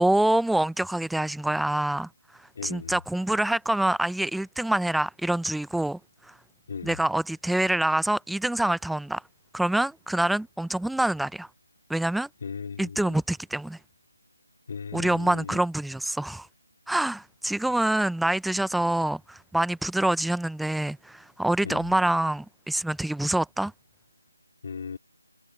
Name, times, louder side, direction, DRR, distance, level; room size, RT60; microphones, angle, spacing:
voice 1, 0.0-2.1 2.6-6.0 6.3-6.4 6.8-9.2 9.5-11.5 11.9-12.3 12.8-13.8 14.9-16.5 16.9-23.7, right 1 dB, ahead, 0.5 m, -26 dB
voice 2, 2.6-3.0 6.7-7.0 12.4-13.2 14.7-15.6 21.6-21.8 24.6-25.0, left 5 dB, 35° left, 4.1 m, -37 dB
figure-of-eight pair, 175°, 0 cm